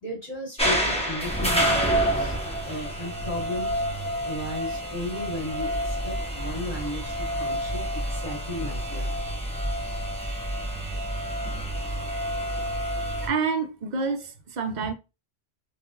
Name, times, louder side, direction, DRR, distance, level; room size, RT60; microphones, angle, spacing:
voice 1, 0.0-2.3 2.6-3.8 4.2-9.3, left 1 dB, 35° left, 1.5 m, -35 dB
sound 1, 0.6-13.3, equal, 5° left, 0.7 m, -28 dB
voice 2, 13.2-14.9, right 5 dB, 55° right, 0.6 m, -28 dB
3.6 x 2.4 x 2.4 m
omnidirectional pair, 1.1 m